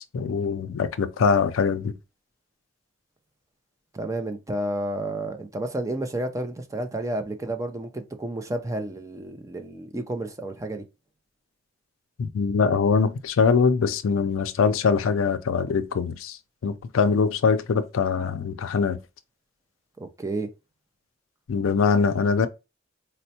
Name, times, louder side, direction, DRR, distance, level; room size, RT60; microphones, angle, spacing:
voice 1, 0.1-1.9 12.2-19.0 21.5-22.5, left 5 dB, 80° left, 0.4 m, -23 dB
voice 2, 3.9-10.8 20.0-20.5, right 1 dB, 15° right, 0.4 m, -31 dB
4.2 x 2.1 x 2.7 m
head